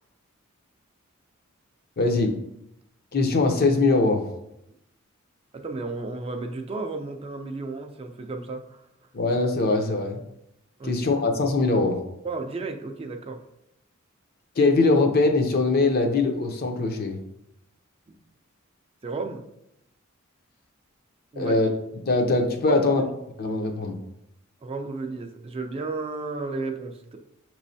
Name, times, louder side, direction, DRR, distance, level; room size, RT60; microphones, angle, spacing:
voice 1, 2.0-2.3 3.1-4.2 9.1-10.2 10.8-12.0 14.6-17.2 21.4-21.7 22.1-23.0 23.4-23.9, left 3 dB, 50° left, 4 dB, 0.6 m, -22 dB
voice 2, 5.5-8.8 10.8-10.9 12.2-13.4 18.1-18.2 19.0-19.4 21.3-21.5 22.7-23.1 24.6-27.2, right 3 dB, 30° right, 5 dB, 0.4 m, -33 dB
6.1 x 3.1 x 2.7 m, 0.81 s
head